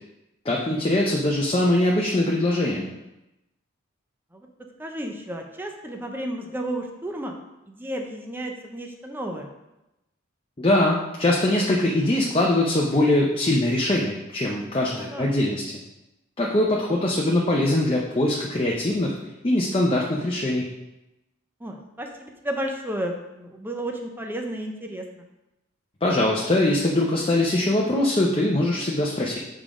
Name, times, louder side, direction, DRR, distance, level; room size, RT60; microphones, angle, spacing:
voice 1, 0.4-2.9 10.6-15.6 16.4-19.1 19.4-20.7 26.0-29.4, left 1 dB, 25° left, -2 dB, 0.6 m, -22 dB
voice 2, 4.8-7.4 7.7-9.5 14.9-15.3 16.8-16.9 21.6-25.2, right 1 dB, 10° right, 2 dB, 0.6 m, -32 dB
7.2 x 3.7 x 4.9 m, 0.94 s
head